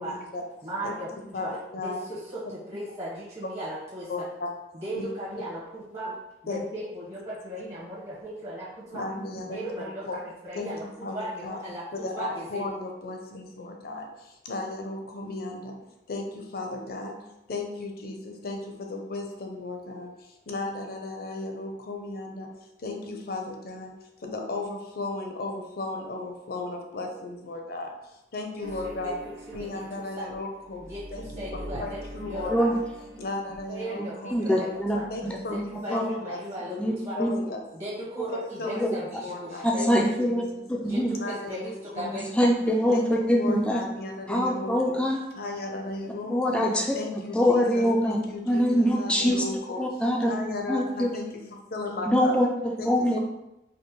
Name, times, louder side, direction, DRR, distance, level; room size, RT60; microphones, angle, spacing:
voice 1, 0.0-0.4 0.8-0.9 1.3-2.1 4.1-4.5 5.0-5.1 6.5-6.6 8.9-10.2 10.6-10.7 11.0-11.6 11.9-15.8 16.1-17.2 17.5-22.5 22.8-23.9 24.2-29.2 29.5-30.9 31.1-32.8 33.2-34.7 35.1-36.4 36.7-37.6 38.3-40.6 41.1-42.5 42.9-45.0 45.4-46.6 46.9-49.8 50.2-52.4 52.8-53.2, left 2 dB, 55° left, 2 dB, 0.6 m, -35 dB
voice 2, 0.6-1.6 1.8-4.3 4.7-6.1 6.4-12.6 28.6-29.1 29.5-29.8 30.1-30.3 30.8-32.7 33.7-35.1 35.5-37.2 37.7-39.8 40.2-40.3 40.8-42.3, right 1 dB, 40° right, -9 dB, 1.1 m, -37 dB
sound 1, 28.6-34.3 34.6-35.8, right 1 dB, 60° right, 0.7 m, -44 dB
voice 3, 34.3-35.0 35.5-35.6 35.9-36.0 36.8-36.9 37.2-37.3 38.2-38.3 38.6-38.9 39.6-40.4 40.7-41.1 42.3-43.8 44.3-45.2 46.3-48.2 48.5-49.4 49.8-50.3 50.7-51.1 52.1-53.2, equal, 5° left, 0 dB, 0.4 m, -24 dB
5.0 x 2.2 x 3.1 m, 0.91 s
head